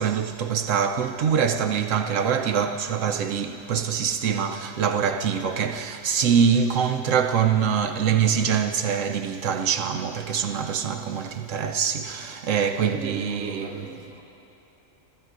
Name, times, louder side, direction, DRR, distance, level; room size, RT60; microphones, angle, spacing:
voice 1, 0.0-13.8, right 7 dB, 75° right, 0.9 m, -24 dB
voice 2, 12.8-14.2, equal, 40° left, 3.7 m, -40 dB
29.5 x 14.0 x 2.5 m
omnidirectional pair, 1.4 m